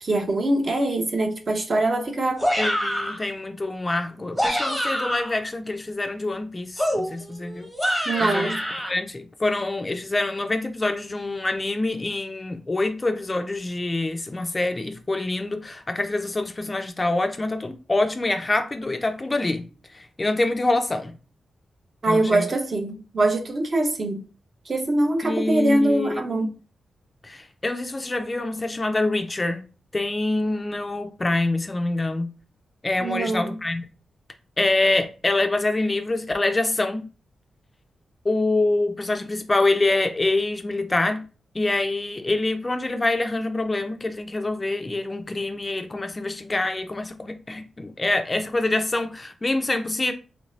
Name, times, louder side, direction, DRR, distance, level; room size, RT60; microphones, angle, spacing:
voice 1, 0.0-2.4 8.1-8.6 22.0-24.2 24.7-26.5 33.0-33.6, right 2 dB, 40° right, 0.6 m, -23 dB
sound 1, 2.4-3.2 4.2-5.4 6.8-8.9, equal, 5° right, 0.8 m, -26 dB
voice 2, 2.6-8.5 8.9-19.7 19.9-21.1 22.0-22.5 25.2-26.5 27.2-29.7 29.9-32.3 32.8-33.8 34.6-37.1 38.2-41.3 41.5-50.1, left 2 dB, 20° left, 0.3 m, -25 dB
3.0 x 2.5 x 3.1 m
wide cardioid pair, 130°, 0 cm